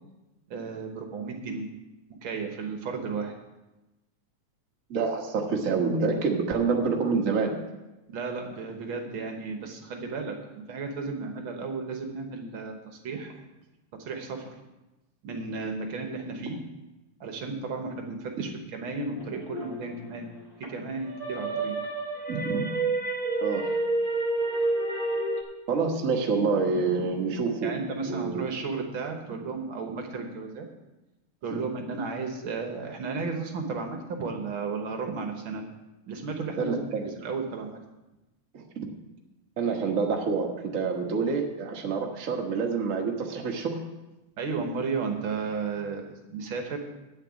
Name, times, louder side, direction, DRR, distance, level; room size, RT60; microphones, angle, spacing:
voice 1, 0.5-1.7 2.2-3.3 8.1-13.3 14.0-14.5 15.2-16.6 17.2-20.3 20.7-21.8 27.6-30.6 31.4-35.6 36.1-36.8 37.2-37.8 44.4-46.8, right 4 dB, 60° right, 3 dB, 1.4 m, -34 dB
voice 2, 4.9-7.5 22.3-22.7 23.4-23.7 25.7-27.7 28.0-28.4 31.5-31.6 36.6-37.1 38.5-38.9 39.6-43.8, right 4 dB, 80° right, 1 dB, 0.7 m, -27 dB
sound 1, 19.1-20.7 21.1-25.4, right 2 dB, 20° left, 1.7 m, -29 dB
8.9 x 6.7 x 8.2 m, 1.0 s
omnidirectional pair, 3.5 m